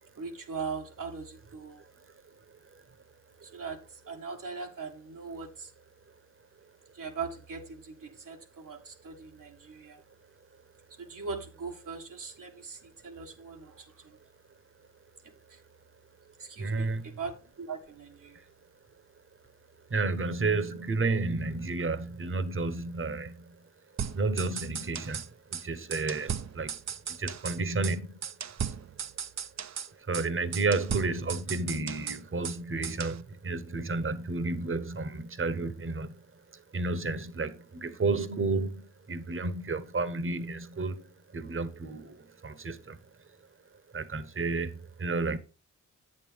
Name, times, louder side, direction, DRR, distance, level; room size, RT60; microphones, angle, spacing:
voice 1, 0.2-1.8 3.4-5.7 6.9-10.0 11.0-14.2 15.2-15.6 16.4-18.4, right 5 dB, 85° right, 1.7 m, -40 dB
voice 2, 16.6-17.2 19.9-23.5 24.1-26.8 27.1-28.2 30.1-36.2 36.7-41.1 41.3-43.0 43.9-45.4, right 3 dB, 40° right, 1.0 m, -31 dB
sound 1, 24.0-25.3 25.5-25.6 25.9-27.6 27.8-28.0 28.2-29.9 30.1-30.3 30.5-32.6 32.8-33.2, right 8 dB, 55° right, 0.6 m, -36 dB
8.2 x 7.6 x 3.4 m
cardioid pair, 60°, 32 cm